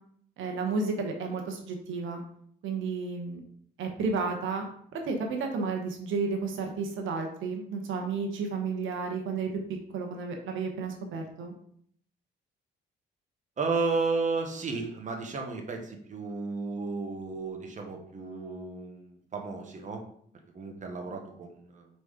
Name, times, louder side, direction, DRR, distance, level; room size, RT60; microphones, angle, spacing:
voice 1, 0.4-2.2 2.6-3.4 3.8-4.6 4.9-9.6 9.9-11.5, right 4 dB, 80° right, 3 dB, 1.1 m, -32 dB
voice 2, 13.6-20.0 20.5-21.9, right 4 dB, 40° right, 3 dB, 1.2 m, -33 dB
4.5 x 4.1 x 5.0 m, 0.63 s
cardioid pair, 90°, 20 cm